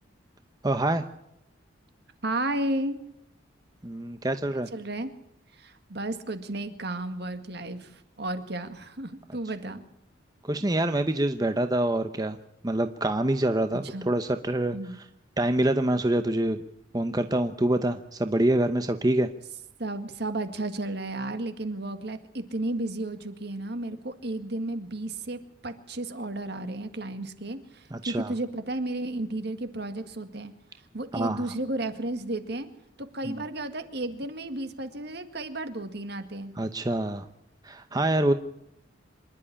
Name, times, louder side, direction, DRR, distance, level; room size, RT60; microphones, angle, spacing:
voice 1, 0.6-1.0 3.8-4.7 10.4-12.4 12.6-15.0 15.4-16.6 16.9-19.3 27.9-28.3 31.1-31.5 33.2-33.4 36.6-37.3 37.6-38.3, right 1 dB, 20° right, 8 dB, 0.8 m, -26 dB
voice 2, 2.2-3.0 4.7-5.1 5.6-9.8 13.7-14.1 14.7-15.0 19.8-30.5 30.9-32.7 33.0-36.5, right 2 dB, 60° right, 9 dB, 2.0 m, -33 dB
26.0 x 11.5 x 9.9 m, 0.80 s
head